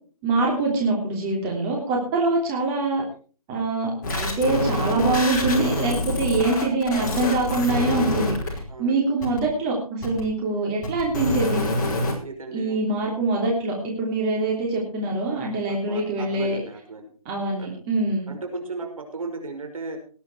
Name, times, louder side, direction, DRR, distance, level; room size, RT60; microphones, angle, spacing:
voice 1, 0.2-3.0 3.5-11.7 12.5-16.6 17.2-18.3, right 2 dB, 15° right, -2 dB, 3.2 m, -24 dB
sound 1, 4.0-8.6 9.2-9.4 10.0-10.2 10.8-12.1, left 1 dB, 30° left, 5.4 m, -26 dB
voice 2, 8.7-9.0 12.2-12.8 15.7-17.1 17.6-17.7 18.3-20.0, right 3 dB, 65° right, 5 dB, 5.7 m, -35 dB
19.0 x 10.0 x 4.8 m, 0.40 s
figure-of-eight pair, 160°, 19 cm